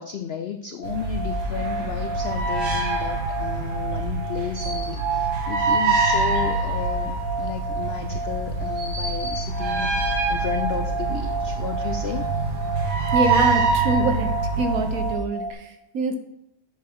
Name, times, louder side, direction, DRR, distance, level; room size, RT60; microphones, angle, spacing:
voice 1, 0.0-7.1 7.4-12.3, left 8 dB, 70° left, 8 dB, 0.6 m, -33 dB
sound 1, 0.8-15.5, right 2 dB, 10° left, 0.7 m, -32 dB
sound 2, 0.8-15.1, right 3 dB, 85° right, 2.1 m, -25 dB
voice 2, 13.1-14.3 14.6-16.1, right 2 dB, 60° right, 6 dB, 1.4 m, -25 dB
10.5 x 7.3 x 3.7 m, 0.83 s
omnidirectional pair, 1.7 m